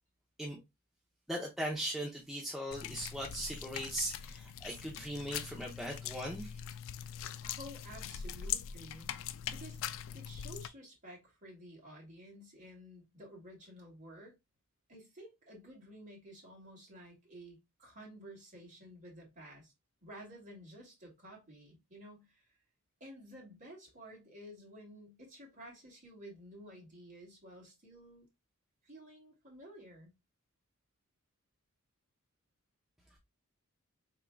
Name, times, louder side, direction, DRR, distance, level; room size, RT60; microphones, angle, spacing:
voice 1, 1.3-6.5, equal, ahead, 0.7 m, -39 dB
sound 1, 2.7-10.7, left 9 dB, 60° left, 0.3 m, -42 dB
voice 2, 7.4-9.1 9.5-9.8 10.1-14.3 14.9-19.7 20.0-22.5 23.0-28.3 28.8-30.1, equal, 35° right, 2.2 m, -52 dB
4.5 x 3.7 x 2.2 m
head